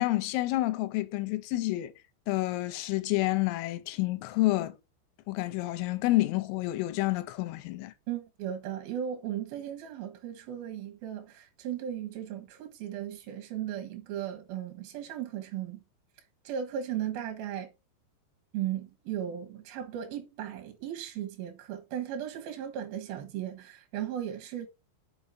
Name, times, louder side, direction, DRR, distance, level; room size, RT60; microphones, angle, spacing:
voice 1, 0.0-1.9 2.3-4.8 5.3-7.9, left 18 dB, 90° left, 3.4 m, -29 dB
voice 2, 8.1-15.8 16.4-17.7 18.5-24.7, right 10 dB, 65° right, 2.6 m, -36 dB
6.5 x 5.5 x 5.8 m
omnidirectional pair, 6.0 m